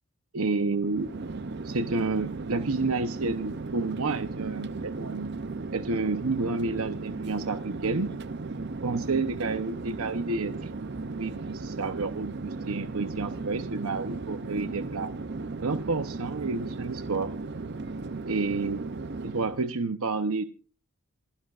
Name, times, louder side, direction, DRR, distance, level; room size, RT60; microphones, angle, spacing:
voice 1, 0.3-1.1 1.6-5.3 5.7-8.1 8.8-10.7 11.2-15.1 15.6-17.3 18.3-18.8 19.2-20.5, right 3 dB, 75° right, 9 dB, 0.9 m, -30 dB
Chatter / Fixed-wing aircraft airplane, 0.8-19.7, right 3 dB, 50° right, 0.6 m, -36 dB
28.0 x 10.0 x 2.5 m, 0.35 s
head